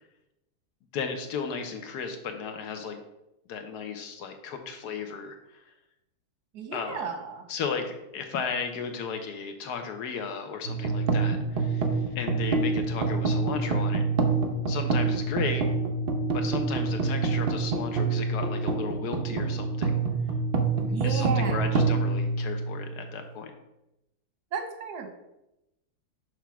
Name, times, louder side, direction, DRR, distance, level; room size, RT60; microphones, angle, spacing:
voice 1, 0.9-3.0 3.5-5.4 6.7-7.1 7.5-14.0 14.7-15.7 16.3-20.0 21.0-23.5, left 6 dB, 80° left, 6 dB, 1.4 m, -35 dB
voice 2, 6.5-7.4 20.7-21.8 24.5-25.1, right 5 dB, 85° right, 5 dB, 1.5 m, -34 dB
sound 1, 10.6-23.1, right 4 dB, 50° right, 0.7 m, -27 dB
6.2 x 3.4 x 5.9 m, 0.90 s
omnidirectional pair, 1.7 m